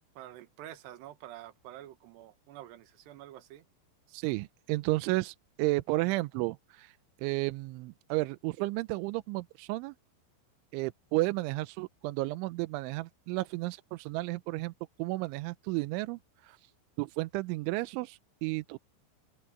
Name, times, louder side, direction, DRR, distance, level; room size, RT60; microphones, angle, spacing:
voice 1, 0.2-3.6, right 13 dB, 65° right, 3.4 m, -48 dB
voice 2, 4.1-6.9 7.2-10.0 10.7-14.7 15.0-16.6 17.0-18.8, right 21 dB, 85° right, 3.0 m, -32 dB
open air
omnidirectional pair, 5.5 m